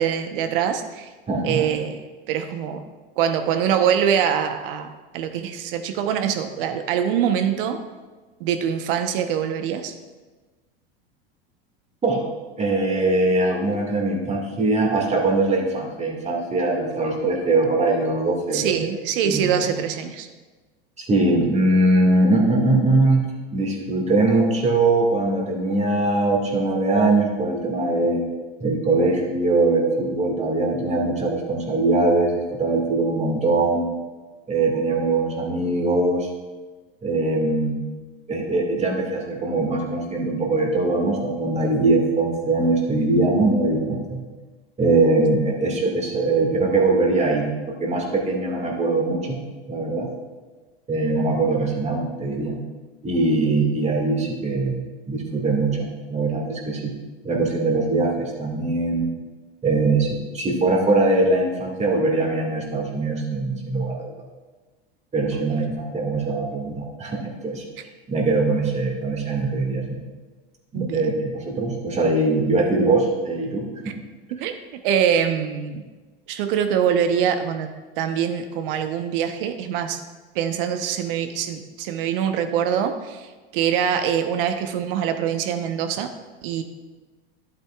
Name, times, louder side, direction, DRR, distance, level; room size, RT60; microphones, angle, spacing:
voice 1, 0.0-1.1 1.4-2.0 2.3-2.8 3.2-4.9 5.1-7.8 8.4-9.9 18.5-20.3 65.3-65.4 70.7-71.1 74.4-74.5 74.8-75.8 76.3-77.7 78.0-80.0 80.3-86.1 86.4-86.6, right 8 dB, 65° right, 7 dB, 1.0 m, -24 dB
voice 2, 1.3-1.6 12.0-12.3 12.6-18.9 19.2-19.8 21.0-28.2 28.6-33.9 34.5-36.3 37.0-37.8 38.3-44.2 44.8-49.4 49.7-50.1 50.9-52.6 53.0-54.8 55.1-57.0 57.2-59.1 59.6-64.1 65.1-67.6 68.1-70.0 70.7-73.7, right 2 dB, 20° right, 1 dB, 2.1 m, -21 dB
12.0 x 8.2 x 2.4 m, 1.3 s
hypercardioid pair, 95°, 30 cm